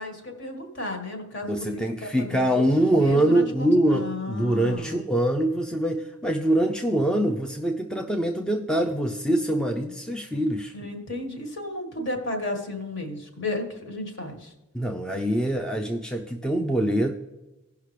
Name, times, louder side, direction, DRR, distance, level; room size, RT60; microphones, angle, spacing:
voice 1, 0.0-5.0 10.7-14.5, left 2 dB, 50° left, 3 dB, 1.7 m, -34 dB
voice 2, 1.4-10.7 14.7-17.1, right 1 dB, 5° left, 3 dB, 0.4 m, -24 dB
17.0 x 5.7 x 3.3 m, 1.0 s
head